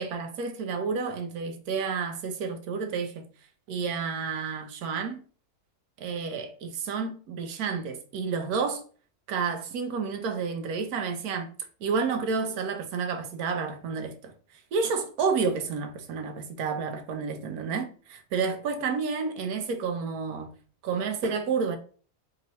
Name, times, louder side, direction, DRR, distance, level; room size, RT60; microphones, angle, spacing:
voice 1, 0.0-3.3 3.7-5.2 6.0-8.8 9.3-11.5 11.8-14.3 14.7-20.5 20.8-21.8, right 5 dB, 90° right, 1.2 m, -30 dB
4.5 x 2.9 x 2.9 m
omnidirectional pair, 1.5 m